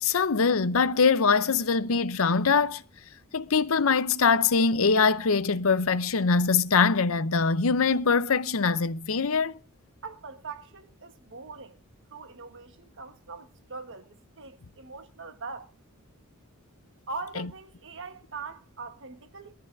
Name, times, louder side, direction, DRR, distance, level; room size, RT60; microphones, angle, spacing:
voice 1, 0.0-2.8 3.3-9.6 17.4-17.5, left 5 dB, 65° left, 0.7 m, -23 dB
voice 2, 10.0-11.8 12.1-15.7 17.1-19.5, right 4 dB, 55° right, 1.4 m, -41 dB
22.0 x 14.0 x 2.6 m
head